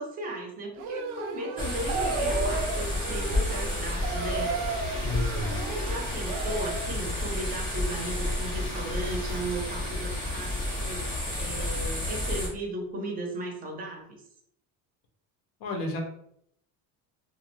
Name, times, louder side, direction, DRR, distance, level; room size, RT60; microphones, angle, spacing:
voice 1, 0.0-4.6 4.9-5.2 5.5-14.2, right 2 dB, 25° right, 0 dB, 0.5 m, -36 dB
sound 1, 0.8-6.9, right 4 dB, 85° right, 0.5 m, -34 dB
sound 2, 1.6-12.5, left 1 dB, 15° left, 0.7 m, -31 dB
voice 2, 5.0-5.6 15.6-16.0, left 2 dB, 65° left, 4 dB, 0.6 m, -31 dB
2.4 x 2.1 x 2.9 m, 0.71 s
cardioid pair, 160°, 39 cm